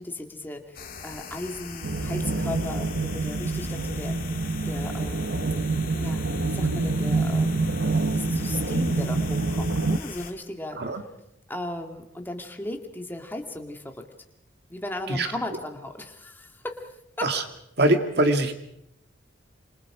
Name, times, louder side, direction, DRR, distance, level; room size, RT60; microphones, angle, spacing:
voice 1, 0.0-4.2 4.6-5.4 6.0-7.7 8.1-10.8 11.5-14.0 14.7-17.3, left 1 dB, 10° left, 3 dB, 2.2 m, -36 dB
sound 1, 0.7-10.3, left 5 dB, 50° left, 2.5 m, -41 dB
sound 2, 1.8-10.0, right 3 dB, 80° right, 1.1 m, -26 dB
voice 2, 17.8-18.5, right 1 dB, 60° right, 7 dB, 2.3 m, -22 dB
27.5 x 26.0 x 4.9 m, 0.75 s
head